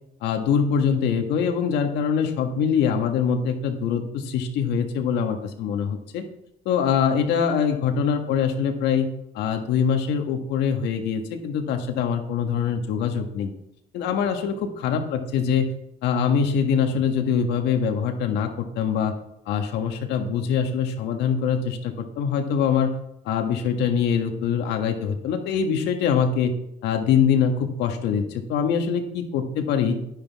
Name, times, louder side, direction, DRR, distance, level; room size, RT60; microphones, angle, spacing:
voice 1, 0.2-6.2 6.6-9.1 9.3-13.5 13.9-15.7 16.0-18.5 18.7-19.1 19.5-22.9 23.2-26.5 26.8-30.0, left 7 dB, 85° left, 5 dB, 1.5 m, -23 dB
10.5 x 9.8 x 3.6 m, 0.80 s
cardioid pair, 110°, 17 cm